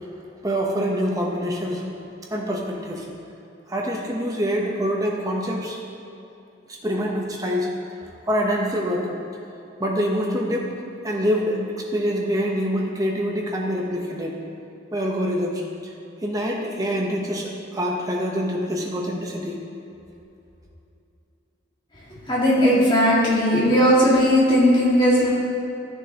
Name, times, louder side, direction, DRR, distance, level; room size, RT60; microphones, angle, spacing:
voice 1, 0.4-1.9 2.3-3.1 3.7-5.8 6.8-7.7 8.3-9.1 9.8-10.7 11.0-14.4 14.9-15.9 16.2-19.6, equal, 15° right, -1 dB, 0.9 m, -25 dB
voice 2, 22.3-25.3, equal, 25° left, -7 dB, 2.0 m, -17 dB
13.0 x 6.7 x 3.0 m, 2.8 s
head